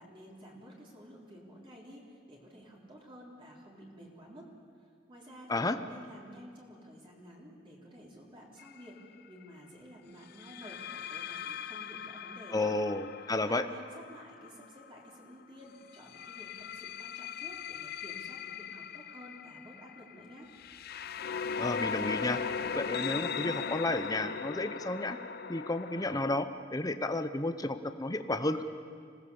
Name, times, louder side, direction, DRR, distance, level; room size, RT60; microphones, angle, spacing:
voice 1, 0.0-4.5 5.1-9.0 9.3-12.7 13.5-20.5, equal, 25° right, -3 dB, 3.7 m, -51 dB
sound 1, 8.6-8.9 10.4-15.1 15.9-26.4, left 6 dB, 50° left, 0.6 m, -39 dB
voice 2, 12.5-13.6 21.6-22.4 22.7-25.2 25.5-28.6, left 2 dB, 20° left, 9 dB, 0.8 m, -32 dB
26.0 x 18.5 x 7.1 m, 2.1 s
head